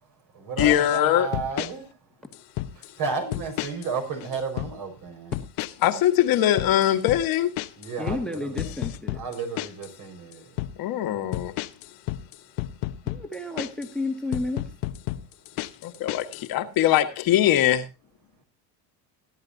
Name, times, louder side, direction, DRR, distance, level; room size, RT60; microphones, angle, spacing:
voice 1, 0.0-2.0 2.7-5.3 7.8-8.7 9.1-10.6 15.2-15.3, right 5 dB, 50° right, 5.2 m, -33 dB
sound 1, 0.6-1.0 1.3-1.7 2.3-2.9 3.3-3.9 4.2-4.7 5.3-5.9 6.2-9.9 10.3-10.7 11.3-13.9 14.3-16.5, left 16 dB, 80° left, 1.0 m, -32 dB
voice 2, 0.6-1.3 5.8-7.5 10.8-11.6 15.8-17.9, left 12 dB, 60° left, 1.6 m, -22 dB
voice 3, 8.0-9.2 13.0-14.6, left 2 dB, ahead, 1.6 m, -31 dB
19.0 x 11.0 x 2.7 m
cardioid pair, 125°, 40 cm